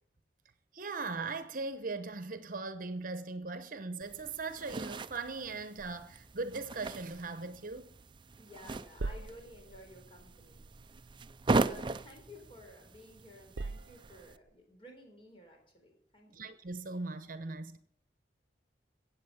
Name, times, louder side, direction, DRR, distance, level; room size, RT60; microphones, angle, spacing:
voice 1, 0.7-8.0 16.3-17.8, right 3 dB, 50° right, 1.0 m, -39 dB
sound 1, 4.0-14.4, right 3 dB, 30° right, 0.5 m, -38 dB
sound 2, 5.8-8.4 8.6-12.9 13.2-14.5, right 3 dB, 85° right, 0.6 m, -46 dB
voice 2, 8.3-10.6 11.6-16.5, left 1 dB, 30° left, 4.2 m, -54 dB
16.0 x 8.2 x 7.1 m
head